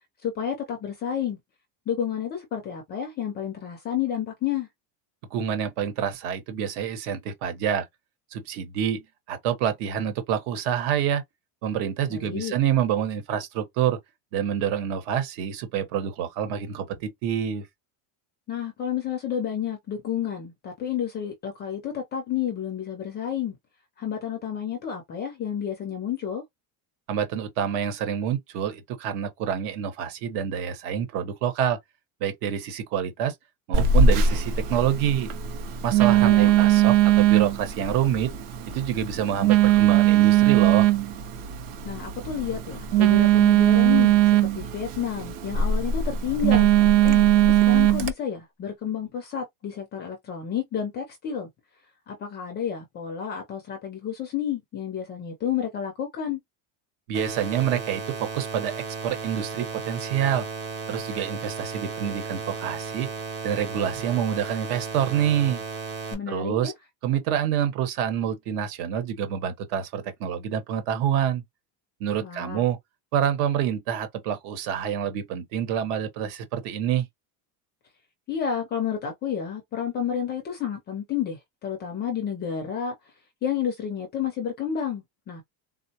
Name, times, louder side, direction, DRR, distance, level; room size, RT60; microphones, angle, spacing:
voice 1, 0.2-1.4 1.9-4.7 12.1-12.5 18.5-23.6 24.0-26.4 36.0-36.5 41.8-46.7 47.0-51.5 52.1-56.4 66.1-66.7 72.2-72.6 78.3-82.9 83.4-85.4, left 8 dB, 25° left, 0.3 m, -30 dB
voice 2, 5.3-7.9 8.3-11.2 11.6-14.0 14.3-17.6 27.1-31.8 32.2-33.3 33.7-35.3 35.8-38.3 38.7-40.9 57.1-60.4 60.9-63.1 63.4-65.6 66.3-66.7 67.0-71.4 72.0-72.8 73.1-77.1, right 9 dB, 65° right, 1.0 m, -27 dB
Telephone, 33.7-48.1, right 10 dB, 45° right, 0.5 m, -20 dB
sound 1, 57.1-66.1, right 5 dB, 20° right, 0.9 m, -35 dB
3.7 x 2.1 x 2.7 m
cardioid pair, 175°, 48 cm